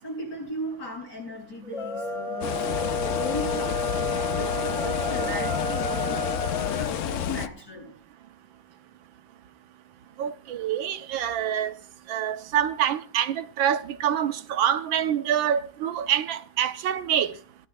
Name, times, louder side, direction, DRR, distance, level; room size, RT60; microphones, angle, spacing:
voice 1, 0.0-3.9 4.3-6.3 6.6-8.0, equal, 60° left, 7.7 m, -37 dB
sound 1, 1.6-6.9, left 2 dB, 20° left, 1.2 m, -30 dB
sound 2, 2.4-7.5, left 9 dB, 90° left, 0.6 m, -30 dB
voice 2, 10.2-11.7 12.1-17.3, right 10 dB, 85° right, 1.6 m, -26 dB
17.5 x 12.0 x 2.3 m
omnidirectional pair, 2.1 m